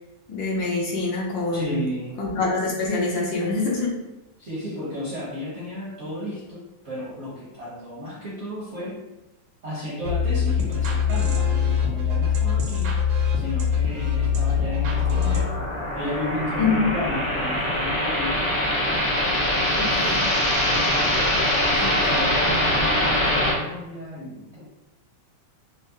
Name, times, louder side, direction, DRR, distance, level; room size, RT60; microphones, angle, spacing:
voice 1, 0.3-1.8 2.2-4.0 16.6-16.9 19.8-20.2, left 3 dB, 70° left, -3 dB, 1.3 m, -25 dB
voice 2, 1.5-2.2 4.4-9.0 9.6-13.0 13.3-15.5 15.9-18.4 19.9-20.2 21.6-24.6, left 1 dB, 55° right, -8 dB, 0.7 m, -33 dB
sound 1, 10.0-15.4, left 7 dB, 75° right, 1.4 m, -23 dB
sound 2, 14.3-23.5, left 1 dB, 40° left, 0.7 m, -23 dB
4.7 x 2.0 x 2.7 m, 0.97 s
omnidirectional pair, 2.3 m